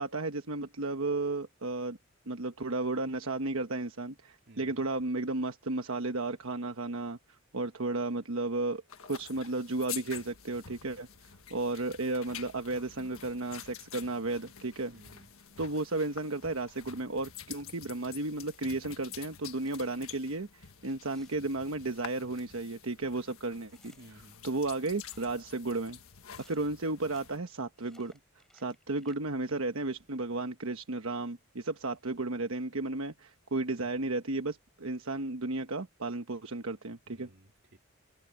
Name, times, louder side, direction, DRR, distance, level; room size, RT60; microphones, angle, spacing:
voice 1, 0.0-2.0 2.3-7.2 7.5-11.1 11.5-14.9 15.6-23.9 24.4-26.0 26.4-28.1 28.5-37.3, right 2 dB, 75° right, 1.2 m, -33 dB
voice 2, 4.5-4.8 14.9-15.3 24.0-24.5 33.8-33.9 37.1-37.8, right 1 dB, 55° right, 3.0 m, -56 dB
sound 1, 8.9-27.4, left 9 dB, 85° left, 1.5 m, -48 dB
sound 2, 18.5-18.7 19.4-19.9 20.8-21.4 22.0-22.1 22.4-22.5 23.7-24.2 24.8-25.4 26.3-26.7 27.0-27.2 27.7-29.2, left 1 dB, ahead, 4.9 m, -63 dB
head